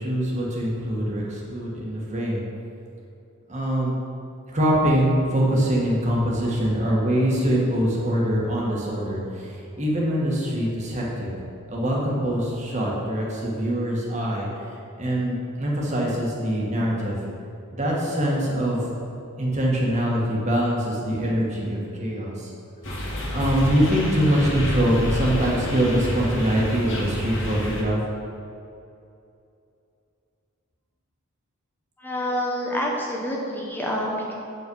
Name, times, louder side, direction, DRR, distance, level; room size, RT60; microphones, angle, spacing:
voice 1, 0.0-2.4 3.5-4.0 4.5-11.3 11.7-14.5 15.0-17.2 17.7-18.9 19.4-22.5 23.3-28.0, equal, 35° right, -3 dB, 1.7 m, -23 dB
sound 1, 22.8-27.8, equal, 65° left, 1.9 m, -29 dB
voice 2, 32.0-34.3, equal, 10° left, -2 dB, 1.0 m, -27 dB
8.7 x 5.6 x 5.5 m, 2.6 s
head